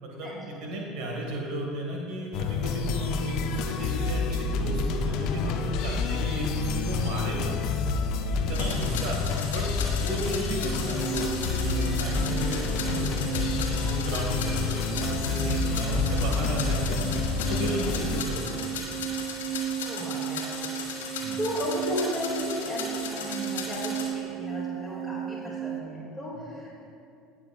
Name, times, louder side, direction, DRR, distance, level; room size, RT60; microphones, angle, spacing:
voice 1, 0.0-7.6 8.4-13.3 13.8-17.1 17.5-18.8 21.2-21.4, right 1 dB, 65° right, -1 dB, 1.5 m, -34 dB
sound 1, 2.3-18.2, left 4 dB, 60° left, 0.6 m, -28 dB
sound 2, 8.5-24.0, left 5 dB, 80° left, 1.4 m, -37 dB
sound 3, 10.6-25.8, right 11 dB, 40° right, 0.8 m, -35 dB
voice 2, 15.8-16.3 17.8-18.1 19.8-20.4 20.7-26.7, equal, 15° right, -6 dB, 2.2 m, -35 dB
17.5 x 5.9 x 2.4 m, 2.5 s
hypercardioid pair, 70°, 0 cm